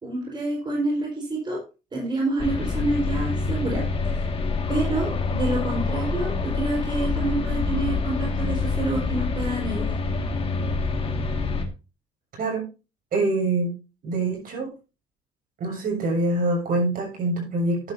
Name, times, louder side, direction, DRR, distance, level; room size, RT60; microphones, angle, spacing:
voice 1, 0.0-1.6 1.9-4.3 4.7-10.0, right 2 dB, 25° right, -2 dB, 4.5 m, -28 dB
sound 1, 2.4-11.6, left 4 dB, 35° left, 2.0 m, -26 dB
voice 2, 13.1-13.7 14.0-14.7 15.6-17.9, right 2 dB, 55° right, 1 dB, 6.7 m, -25 dB
11.5 x 10.5 x 2.7 m, 0.30 s
cardioid pair, 110°, 17 cm